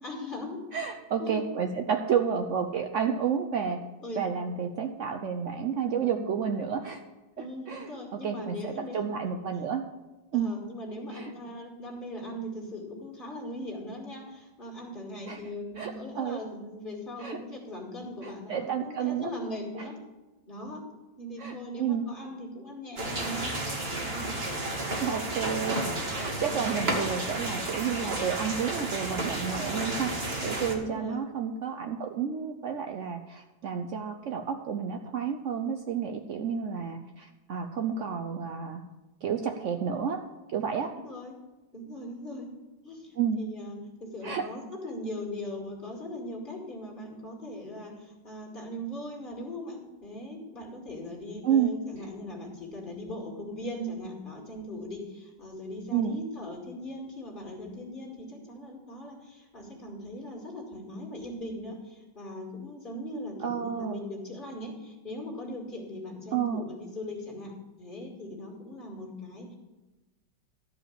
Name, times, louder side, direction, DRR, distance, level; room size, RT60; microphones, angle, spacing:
voice 1, 0.0-0.6 1.2-1.5 4.0-4.3 5.9-6.2 7.4-9.0 10.3-20.0 20.5-20.8 21.2-23.5 23.9-24.3 26.3-26.7 30.7-31.2 40.9-41.4 41.7-42.5 42.8-69.5, left 1 dB, 25° left, -1 dB, 2.4 m, -39 dB
voice 2, 0.7-3.8 4.2-7.0 7.4-7.9 8.2-9.8 10.3-10.5 11.1-11.3 15.3-15.4 15.8-16.4 17.2-17.4 18.2-19.3 19.7-19.9 21.4-22.1 25.0-25.8 26.1-30.1 30.4-38.8 39.2-40.2 40.5-40.9 43.2-43.4 44.2-44.5 51.4-51.7 55.9-56.2 63.4-64.0 66.3-66.6, right 7 dB, 75° right, 5 dB, 0.7 m, -30 dB
sound 1, 23.0-30.7, right 1 dB, 30° right, 1.7 m, -32 dB
13.0 x 5.0 x 8.6 m, 1.1 s
omnidirectional pair, 2.1 m